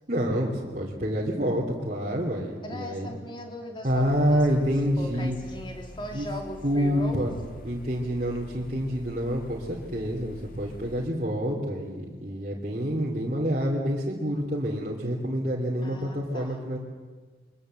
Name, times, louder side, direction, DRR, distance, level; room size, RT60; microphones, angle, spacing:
voice 1, 0.1-3.1 3.8-5.4 6.1-6.3 6.6-7.3 7.6-16.8, equal, 40° right, -4 dB, 2.8 m, -27 dB
voice 2, 2.6-7.3 15.8-16.6, left 1 dB, 25° left, 2 dB, 3.4 m, -39 dB
sound 1, 3.9-11.1, left 1 dB, 50° left, 2.1 m, -46 dB
29.0 x 23.0 x 7.7 m, 1.4 s
head